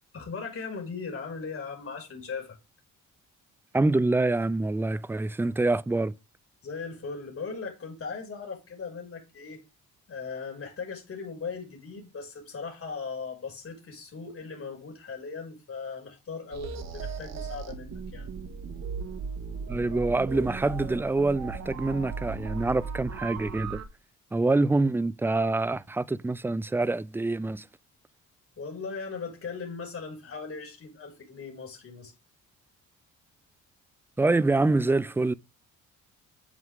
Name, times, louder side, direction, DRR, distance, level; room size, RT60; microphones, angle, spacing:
voice 1, 0.1-2.6 6.6-9.6 10.1-18.3 28.6-32.1, left 5 dB, 50° left, 6.1 m, -38 dB
voice 2, 3.7-6.1 19.7-23.8 24.3-27.6 34.2-35.3, right 2 dB, 5° right, 0.5 m, -26 dB
sound 1, 16.5-23.8, right 5 dB, 60° right, 2.0 m, -37 dB
9.9 x 8.0 x 3.7 m
cardioid pair, 90°, 30 cm